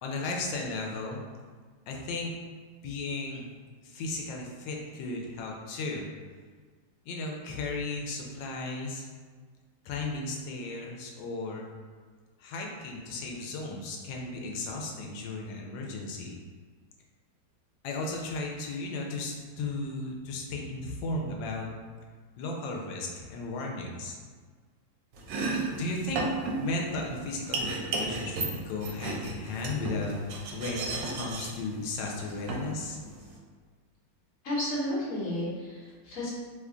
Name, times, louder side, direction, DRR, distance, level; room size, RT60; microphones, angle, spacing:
voice 1, 0.0-1.2 1.9-2.3 2.8-3.5 3.8-6.1 7.1-9.1 9.8-11.7 12.4-16.4 17.8-21.7 22.4-24.2 25.4-26.2 26.6-33.0, left 2 dB, 90° left, 0 dB, 1.3 m, -35 dB
Domestic sounds home sounds, 25.1-33.4, right 3 dB, 75° right, 1.2 m, -34 dB
voice 2, 34.4-36.3, left 1 dB, 50° left, -7 dB, 1.3 m, -32 dB
3.2 x 2.2 x 3.6 m, 1.6 s
omnidirectional pair, 2.0 m